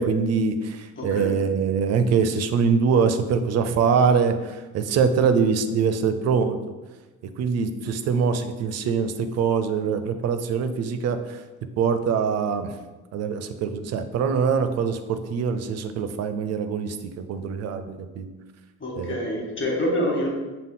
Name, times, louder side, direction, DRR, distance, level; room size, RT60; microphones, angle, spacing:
voice 1, 0.0-6.6 7.4-11.4 11.8-12.7 13.1-18.3 19.0-19.2, right 6 dB, 55° right, 10 dB, 0.5 m, -23 dB
voice 2, 1.0-1.4 18.8-20.3, equal, 40° left, -1 dB, 1.2 m, -26 dB
5.5 x 2.1 x 3.7 m, 1.2 s
cardioid pair, 90°, 30 cm